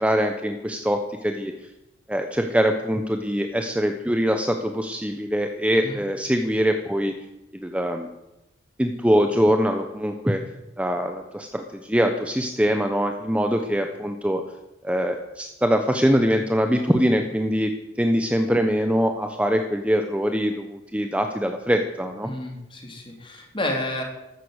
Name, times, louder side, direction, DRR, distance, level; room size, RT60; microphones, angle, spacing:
voice 1, 0.0-1.5 2.1-7.1 7.6-8.1 8.8-10.4 10.8-14.4 14.8-22.3, equal, 5° right, 5 dB, 0.9 m, -23 dB
voice 2, 22.2-24.0, left 1 dB, 25° left, 2 dB, 3.3 m, -30 dB
13.5 x 13.0 x 8.2 m, 0.94 s
head